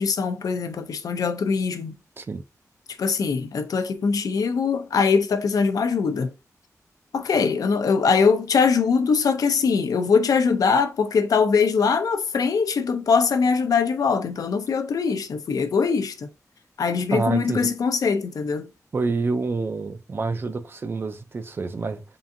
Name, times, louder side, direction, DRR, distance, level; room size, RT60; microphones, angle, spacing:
voice 1, 0.0-2.0 3.0-6.3 7.1-16.3 16.8-18.7, left 5 dB, 90° left, 0.5 m, -22 dB
voice 2, 17.1-17.7 18.9-22.0, right 3 dB, 40° right, 0.4 m, -27 dB
3.7 x 3.5 x 2.6 m
wide cardioid pair, 155°, 6 cm